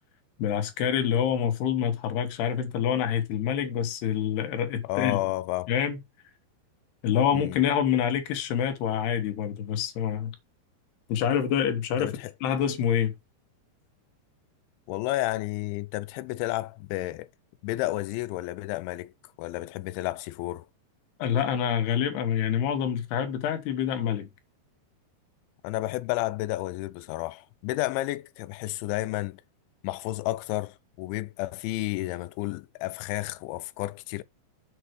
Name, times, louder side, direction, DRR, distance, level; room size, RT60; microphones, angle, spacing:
voice 1, 0.4-5.2 5.7-6.0 7.0-10.4 11.1-13.1 21.2-24.3, left 8 dB, 70° left, 3.2 m, -26 dB
voice 2, 4.9-5.7 7.3-7.6 12.0-12.3 14.9-17.3 17.6-19.1 19.4-20.7 25.6-29.4 29.8-34.2, left 18 dB, 90° left, 3.0 m, -31 dB
7.9 x 6.1 x 4.6 m
omnidirectional pair, 5.2 m